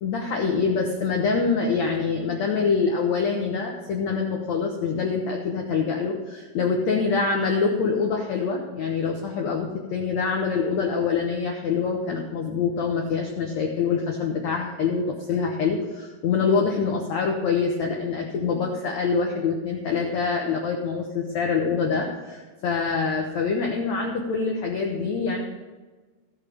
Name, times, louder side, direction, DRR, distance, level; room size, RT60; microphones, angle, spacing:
voice 1, 0.0-25.4, left 5 dB, 85° left, 1 dB, 1.5 m, -25 dB
16.5 x 6.4 x 5.0 m, 1.3 s
omnidirectional pair, 4.9 m